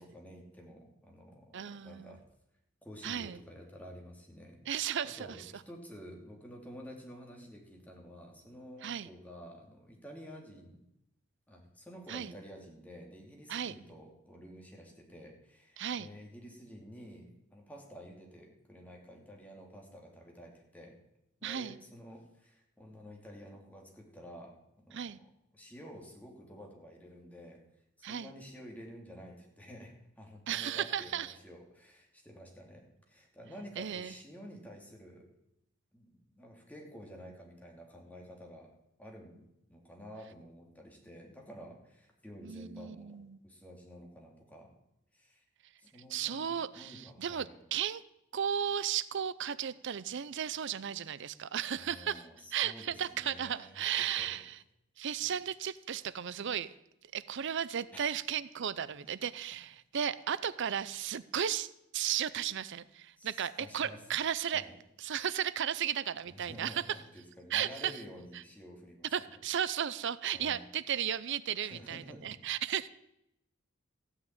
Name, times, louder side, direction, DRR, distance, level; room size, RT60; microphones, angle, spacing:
voice 1, 0.0-2.2 2.8-10.8 11.5-21.0 21.4-25.3 25.5-27.6 28.1-35.3 35.9-38.7 39.0-44.7 45.1-45.4 45.8-47.6 51.7-54.4 55.2-55.3 57.9-58.1 63.2-64.0 64.5-64.7 66.3-69.1 70.3-70.6 71.6-72.4, equal, 10° left, 0 dB, 2.8 m, -51 dB
voice 2, 1.5-2.2 3.0-3.4 4.7-5.6 8.8-9.1 12.1-12.3 13.5-13.8 15.8-16.1 21.4-21.8 24.9-25.2 28.0-28.3 30.5-31.3 33.8-34.1 42.4-43.4 46.1-48.0 48.3-54.6 55.0-56.7 57.1-64.6 65.0-67.0 67.5-67.9 69.1-72.9, right 9 dB, 60° right, 17 dB, 0.5 m, -35 dB
15.0 x 6.0 x 8.9 m, 0.82 s
head